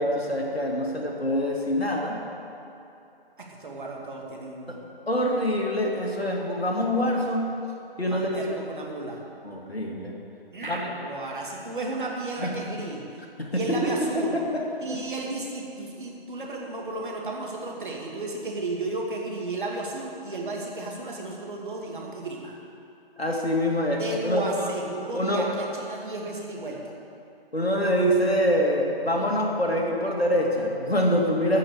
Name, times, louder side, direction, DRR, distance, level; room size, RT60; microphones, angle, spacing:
voice 1, 0.0-2.2 4.7-4.8 5.1-7.5 8.0-8.6 9.4-10.1 10.6-10.9 12.4-12.5 13.4-15.0 23.2-24.7 25.1-25.4 27.5-31.6, equal, 85° left, -1 dB, 2.3 m, -25 dB
voice 2, 3.4-4.8 8.0-9.2 10.5-13.0 13.5-14.4 14.8-22.5 24.0-26.9, right 2 dB, 55° right, -2 dB, 2.3 m, -33 dB
14.5 x 5.9 x 7.1 m, 2.7 s
figure-of-eight pair, 150°, 30 cm